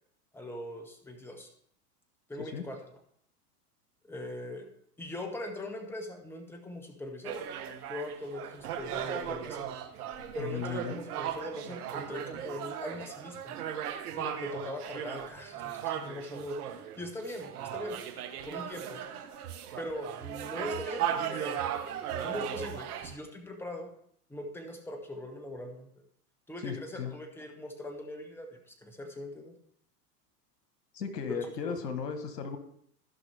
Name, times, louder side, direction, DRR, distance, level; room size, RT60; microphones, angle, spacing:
voice 1, 0.3-1.5 2.3-3.0 4.0-4.7 5.0-7.4 7.9-9.7 10.3-13.6 14.1-16.6 17.0-18.0 18.5-19.0 19.8-21.7 22.2-23.9 24.3-25.9 26.5-29.5 31.3-31.7, left 1 dB, 5° left, 4 dB, 1.4 m, -41 dB
sound 1, 7.2-23.2, right 9 dB, 65° right, 1.3 m, -37 dB
voice 2, 10.4-10.9 26.6-27.1 30.9-32.6, left 6 dB, 80° left, 8 dB, 1.5 m, -36 dB
15.0 x 5.9 x 3.4 m, 0.67 s
hypercardioid pair, 105°, 48 cm